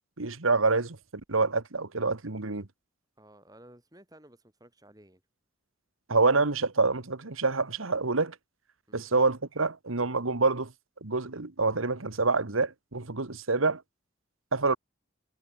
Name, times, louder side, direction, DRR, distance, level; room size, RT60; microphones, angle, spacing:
voice 1, 0.2-2.7 6.1-8.3 8.9-10.7 11.0-13.8 14.5-14.8, right 3 dB, 85° right, 1.7 m, -27 dB
voice 2, 3.2-5.2 8.9-9.1, right 1 dB, 20° right, 7.0 m, -55 dB
head